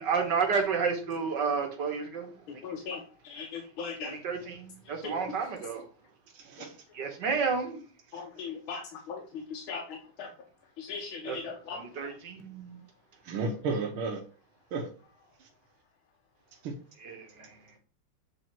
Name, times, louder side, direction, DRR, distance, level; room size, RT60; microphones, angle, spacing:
voice 1, 0.0-2.3 4.2-5.9 6.9-7.8 11.3-11.4 11.8-12.8 17.0-17.5, right 5 dB, 60° right, 1.6 m, -31 dB
voice 2, 2.5-4.2 4.8-5.4 8.1-10.3 10.8-11.8, left 5 dB, 70° left, 1.7 m, -39 dB
voice 3, 6.3-6.8 13.2-14.2 14.7-14.9 15.4-15.5 16.6-16.7, right 3 dB, 75° right, 1.8 m, -33 dB
8.2 x 3.6 x 4.4 m
omnidirectional pair, 2.4 m